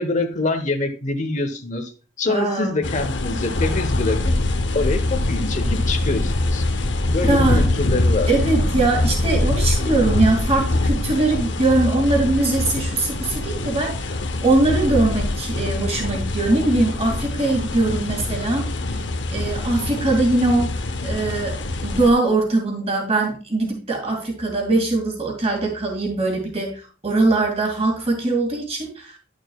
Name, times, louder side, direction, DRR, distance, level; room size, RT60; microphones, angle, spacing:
voice 1, 0.0-1.9 2.2-4.3 4.7-6.7 7.1-8.3, left 2 dB, 40° left, 8 dB, 1.0 m, -25 dB
voice 2, 2.3-2.8 7.3-7.7 8.3-14.1 14.4-19.0 19.3-20.7 21.0-21.5 21.8-26.7 27.0-29.1, right 2 dB, 35° right, 1 dB, 2.4 m, -21 dB
sound 1, 2.8-22.1, left 2 dB, 70° left, 0.8 m, -23 dB
11.5 x 6.4 x 2.3 m, 0.35 s
head